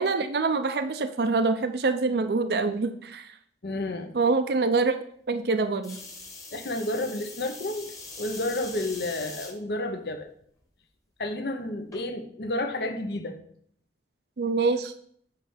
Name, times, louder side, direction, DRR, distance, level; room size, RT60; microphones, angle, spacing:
voice 1, 0.0-3.3 4.1-4.9 5.3-6.0 14.4-14.9, right 3 dB, 65° right, 9 dB, 0.5 m, -25 dB
voice 2, 3.6-4.2 6.5-10.3 11.2-13.4, left 1 dB, 65° left, 6 dB, 0.7 m, -31 dB
sound 1, 5.8-9.5 10.2-10.6 11.9-12.0, left 3 dB, 20° left, 1.2 m, -42 dB
8.3 x 3.3 x 5.6 m, 0.63 s
head